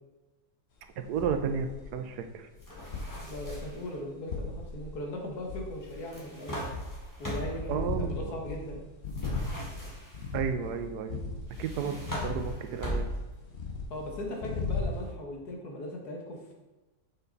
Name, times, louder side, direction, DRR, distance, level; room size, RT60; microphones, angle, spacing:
sound 1, 1.0-1.9 2.4-6.2 6.5-7.1 7.5-13.1 13.4-15.1, left 4 dB, 45° left, 1.2 m, -37 dB
voice 1, 1.0-2.5 7.7-8.4 10.3-11.3 11.6-13.1, right 7 dB, 75° right, 8 dB, 1.2 m, -33 dB
sound 2, 2.6-3.9 5.9-7.7 9.1-10.3 11.5-13.4, equal, 10° left, 1.4 m, -38 dB
voice 2, 3.3-6.7 7.2-8.9 13.9-16.5, left 1 dB, 70° left, 0 dB, 2.0 m, -39 dB
6.9 x 5.8 x 3.9 m, 1.1 s
omnidirectional pair, 1.7 m